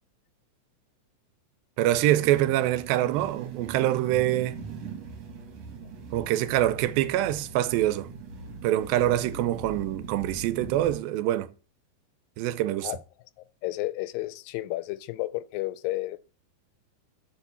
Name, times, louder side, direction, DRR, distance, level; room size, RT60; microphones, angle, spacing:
voice 1, 1.8-4.6 6.1-8.1 8.6-11.5 12.4-12.9, right 13 dB, 85° right, 2.4 m, -25 dB
sound 1, 1.9-10.9, right 4 dB, 55° right, 2.2 m, -41 dB
voice 2, 13.6-16.2, left 18 dB, 85° left, 2.2 m, -32 dB
7.2 x 4.8 x 6.9 m
omnidirectional pair, 4.1 m